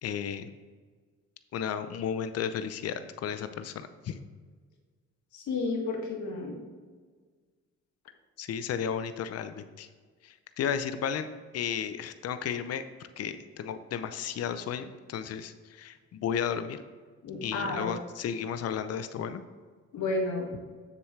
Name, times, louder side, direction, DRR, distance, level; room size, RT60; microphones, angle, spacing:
voice 1, 0.0-0.5 1.5-4.2 8.4-9.9 10.2-11.3 11.5-12.8 13.2-16.8 17.4-19.4, left 8 dB, 55° left, 11 dB, 0.6 m, -33 dB
voice 2, 5.3-6.6 17.2-18.0 19.9-20.5, left 3 dB, 75° left, 0 dB, 1.9 m, -31 dB
7.1 x 6.9 x 3.2 m, 1.5 s
cardioid pair, 90°, 30 cm